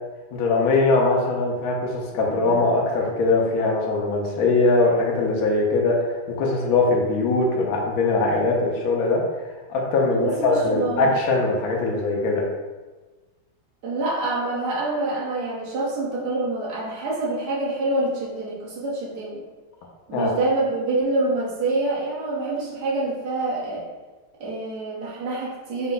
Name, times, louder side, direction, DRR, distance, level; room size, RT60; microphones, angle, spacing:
voice 1, 0.3-9.2 9.7-12.4 20.1-20.3, left 3 dB, 75° left, -1 dB, 0.8 m, -21 dB
voice 2, 10.1-11.1 13.8-19.4 20.1-23.8 24.4-25.9, right 2 dB, 55° right, -6 dB, 1.4 m, -26 dB
4.4 x 2.2 x 3.8 m, 1.2 s
omnidirectional pair, 2.3 m